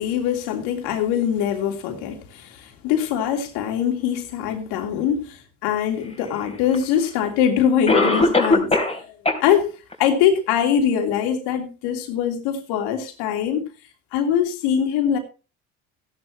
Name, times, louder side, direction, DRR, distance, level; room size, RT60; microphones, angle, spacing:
voice 1, 0.0-8.7 9.1-9.7 10.0-13.7 14.1-15.2, left 9 dB, 90° left, 3.1 m, -23 dB
Cough, 6.7-6.8 7.9-9.0 9.2-9.4 9.9-10.0 10.6-10.7, left 2 dB, 15° left, 3.6 m, -18 dB
15.0 x 11.0 x 3.0 m
cardioid pair, 95°, 39 cm